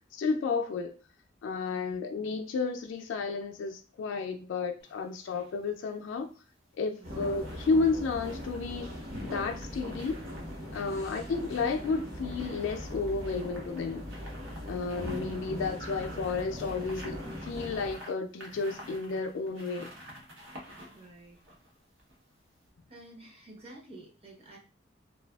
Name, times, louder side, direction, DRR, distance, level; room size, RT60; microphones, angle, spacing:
voice 1, 0.1-1.0 1.4-6.3 6.8-8.9 9.2-10.2 10.7-14.1 14.7-19.9, left 4 dB, 65° left, 0.3 m, -32 dB
sound 1, 4.8-5.5 6.8-22.3 22.6-22.7, equal, 75° right, 0.9 m, -51 dB
voice 2, 7.0-7.3 10.8-11.3 20.9-21.4 22.9-24.6, right 2 dB, 30° right, 0.7 m, -51 dB
sound 2, 7.0-17.9, equal, 50° right, 1.0 m, -40 dB
2.5 x 2.4 x 2.3 m
head